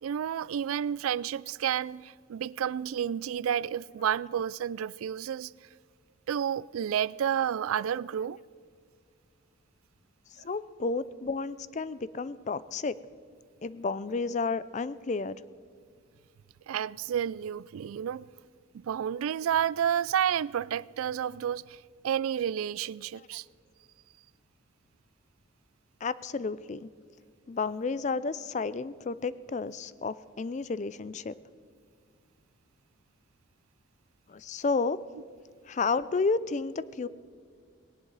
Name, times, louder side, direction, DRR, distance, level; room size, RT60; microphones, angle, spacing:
voice 1, 0.0-5.5 6.3-8.4 16.7-18.3 18.7-21.8 22.0-23.4, right 9 dB, 90° right, 0.3 m, -30 dB
voice 2, 10.4-13.0 13.6-15.4 26.0-26.9 27.5-31.3 34.3-35.0 35.7-37.1, left 4 dB, 35° left, 0.4 m, -31 dB
19.0 x 18.0 x 4.0 m
head